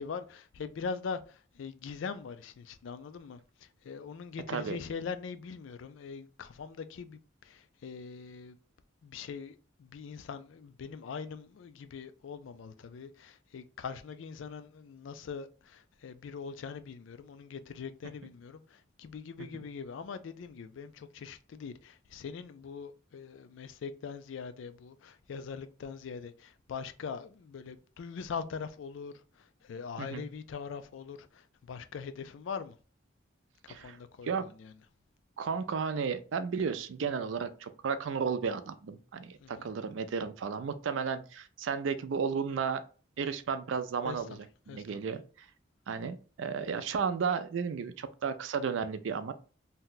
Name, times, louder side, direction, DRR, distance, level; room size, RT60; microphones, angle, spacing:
voice 1, 0.0-8.6 9.0-32.8 33.6-34.7 39.4-39.7 44.0-44.2 44.7-45.0, left 5 dB, 75° left, 0.4 m, -42 dB
voice 2, 35.4-42.8 43.2-44.4 44.7-45.5 45.9-49.3, right 6 dB, 75° right, 0.4 m, -33 dB
2.7 x 2.2 x 3.8 m
head